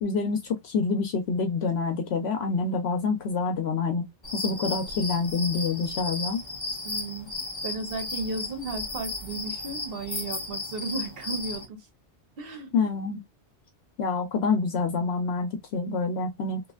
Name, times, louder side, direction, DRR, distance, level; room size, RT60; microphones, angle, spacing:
voice 1, 0.0-4.1 4.3-6.4 12.7-13.2 14.0-16.6, left 4 dB, 70° left, 0.8 m, -27 dB
sound 1, 4.2-11.7, left 2 dB, 25° left, 0.9 m, -35 dB
voice 2, 6.8-7.3 7.6-11.8 12.4-12.7, right 3 dB, 60° right, 1.0 m, -34 dB
3.1 x 2.4 x 2.2 m
omnidirectional pair, 1.1 m